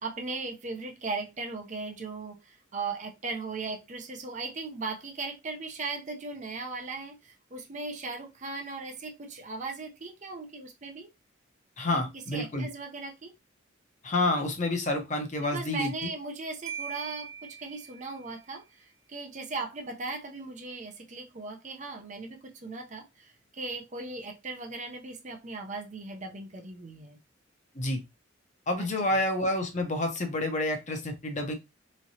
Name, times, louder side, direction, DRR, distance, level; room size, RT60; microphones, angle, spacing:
voice 1, 0.0-11.1 11.9-13.3 15.4-27.2 28.8-29.2, right 3 dB, 35° right, 0.6 m, -38 dB
voice 2, 11.8-12.7 14.0-16.1 27.7-28.0 28.7-31.5, left 2 dB, 35° left, 0.8 m, -29 dB
Marimba xylophone, 16.7-18.4, right 7 dB, 80° right, 0.7 m, -41 dB
3.6 x 3.2 x 2.7 m
head